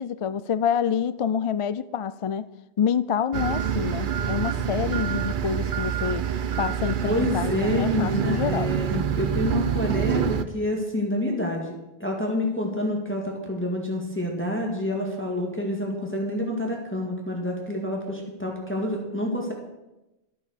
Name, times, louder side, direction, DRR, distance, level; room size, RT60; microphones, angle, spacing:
voice 1, 0.0-2.5 2.8-6.2 6.6-8.7, left 8 dB, 50° left, 15 dB, 0.4 m, -27 dB
sound 1, 3.3-10.4, right 8 dB, 55° right, 0.8 m, -26 dB
voice 2, 7.0-11.7 12.0-19.5, left 1 dB, 10° left, -1 dB, 2.1 m, -28 dB
14.0 x 9.0 x 6.6 m, 0.98 s
omnidirectional pair, 1.1 m